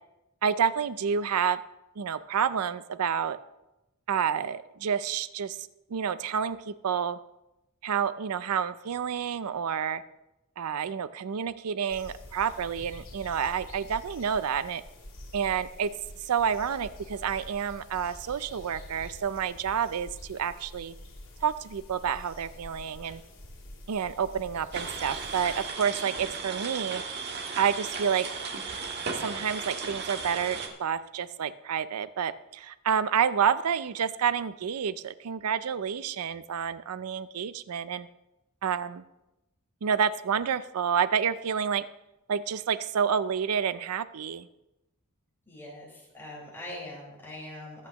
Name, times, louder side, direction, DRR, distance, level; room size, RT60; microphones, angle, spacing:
voice 1, 0.4-1.6 2.0-3.4 4.1-7.2 7.8-10.0 10.6-14.8 15.3-15.9 16.3-20.9 21.4-23.2 23.9-27.0 27.6-28.3 29.2-38.1 38.6-39.0 39.8-41.9 42.3-44.5, right 7 dB, 85° right, 14 dB, 0.5 m, -29 dB
sound 1, 11.9-25.6, left 1 dB, 65° left, 3.3 m, -47 dB
sound 2, 24.7-30.7, right 4 dB, 50° right, 1.4 m, -36 dB
voice 2, 45.5-47.9, left 1 dB, 10° left, -5 dB, 4.8 m, -42 dB
22.0 x 8.3 x 3.0 m, 0.93 s
head